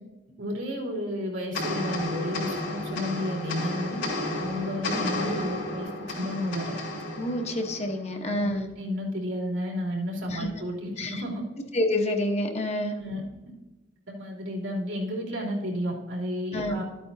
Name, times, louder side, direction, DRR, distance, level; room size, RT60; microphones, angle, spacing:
voice 1, 0.4-4.0 4.4-6.7 8.2-11.4 13.0-13.2 14.1-16.8, left 1 dB, 85° right, -2 dB, 3.1 m, -32 dB
sound 1, 1.5-8.2, left 1 dB, 70° left, 3.1 m, -32 dB
voice 2, 7.2-8.7 10.3-10.5 11.0-11.2 11.7-13.0 16.5-16.8, left 1 dB, 35° left, 4 dB, 1.0 m, -28 dB
12.5 x 8.7 x 2.7 m, 1.1 s
head